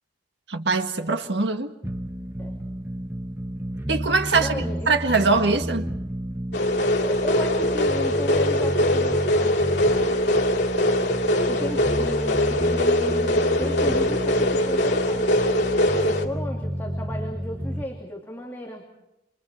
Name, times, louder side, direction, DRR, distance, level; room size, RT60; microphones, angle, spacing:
voice 1, 0.5-1.7 3.9-5.8, right 3 dB, 80° right, 1.7 m, -22 dB
sound 1, 1.8-17.8, equal, 15° right, 1.1 m, -31 dB
voice 2, 4.3-5.0 7.0-10.2 11.5-15.4 15.9-18.9, left 1 dB, 15° left, 2.8 m, -35 dB
sound 2, 6.5-16.3, left 1 dB, 80° left, 2.2 m, -22 dB
29.5 x 26.0 x 4.4 m
head